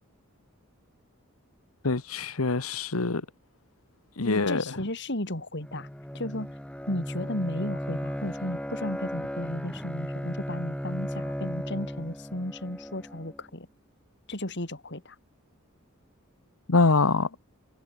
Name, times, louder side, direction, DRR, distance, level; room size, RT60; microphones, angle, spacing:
voice 1, 1.8-3.2 4.2-4.6 16.7-17.3, left 3 dB, 90° left, 1.3 m, -24 dB
voice 2, 4.2-5.9 6.1-6.5 6.9-13.7 14.3-15.2, left 1 dB, 55° left, 5.1 m, -34 dB
Bowed string instrument, 5.6-13.4, equal, 5° left, 2.4 m, -36 dB
head